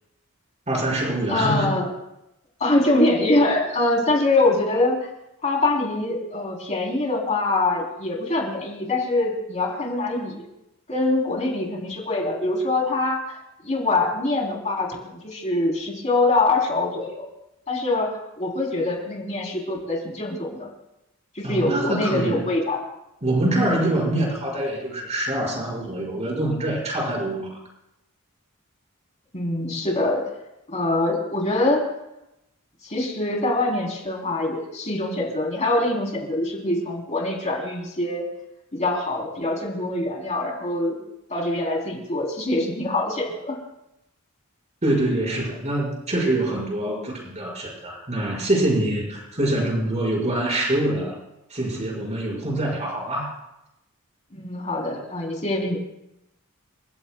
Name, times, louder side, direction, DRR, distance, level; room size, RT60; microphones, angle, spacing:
voice 1, 0.7-1.7 21.4-22.4 23.2-27.6 44.8-51.2 51.5-53.3, right 1 dB, 30° right, -3 dB, 5.2 m, -25 dB
voice 2, 1.3-1.9 2.6-5.1 5.4-10.4 10.9-13.3 13.6-17.3 17.7-20.7 21.3-22.8 23.6-23.7 29.3-30.3 30.7-31.9 32.8-38.4 38.7-41.0 41.3-43.6 54.3-55.8, left 2 dB, 35° left, 0 dB, 3.4 m, -24 dB
29.5 x 15.5 x 2.2 m, 0.88 s
head